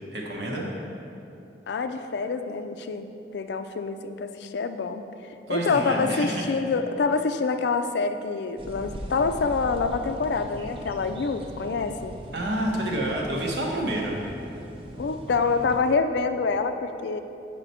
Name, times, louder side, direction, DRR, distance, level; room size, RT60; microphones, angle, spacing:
voice 1, 0.1-0.7 5.5-6.4 12.3-14.2, right 1 dB, 75° right, -1 dB, 1.1 m, -28 dB
voice 2, 1.7-5.0 5.5-12.1 15.0-17.2, left 4 dB, 75° left, 9 dB, 0.4 m, -26 dB
sound 1, 8.6-15.8, equal, 30° right, 0.5 m, -40 dB
8.1 x 4.9 x 4.2 m, 2.8 s
head